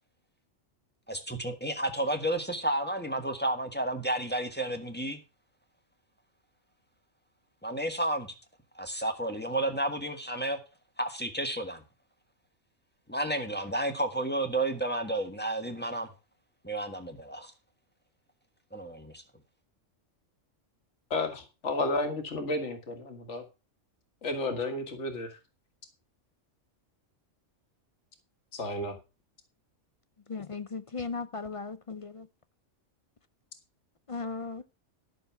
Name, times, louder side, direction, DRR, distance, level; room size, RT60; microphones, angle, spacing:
voice 1, 1.1-5.2 7.6-8.3 8.7-10.6 11.0-11.8 13.1-16.1 16.6-17.5 18.7-19.2, right 1 dB, 10° left, 1.5 m, -31 dB
voice 2, 21.1-23.4 24.2-25.4 28.5-29.0, left 2 dB, 65° left, 2.0 m, -32 dB
voice 3, 30.3-32.3 34.1-34.6, left 4 dB, 45° left, 0.4 m, -37 dB
12.0 x 6.5 x 5.8 m
omnidirectional pair, 1.3 m